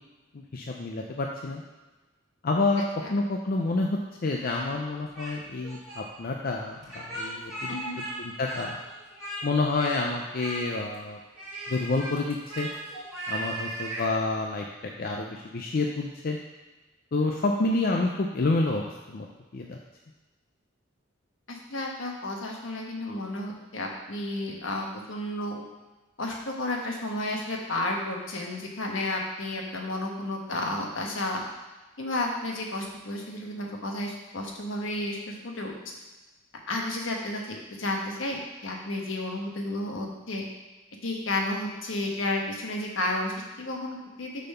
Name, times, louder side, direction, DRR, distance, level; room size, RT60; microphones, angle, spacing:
voice 1, 0.3-1.6 2.4-2.8 3.1-7.8 8.2-8.8 9.4-11.2 11.7-12.7 13.3-14.6 15.0-16.4 17.1-19.3 19.5-19.8, left 3 dB, 50° left, 1 dB, 0.5 m, -28 dB
Speech, 4.4-5.4 5.6-6.0 6.8-8.1 8.4-9.4 9.7-10.0 10.3-10.9 11.3-14.1, right 1 dB, ahead, 2.4 m, -37 dB
voice 2, 7.7-8.0 21.5-25.6 26.2-31.4 32.0-35.9 36.7-40.4 41.0-44.3, left 1 dB, 75° left, 0 dB, 1.2 m, -32 dB
6.6 x 4.2 x 5.5 m, 1.2 s
head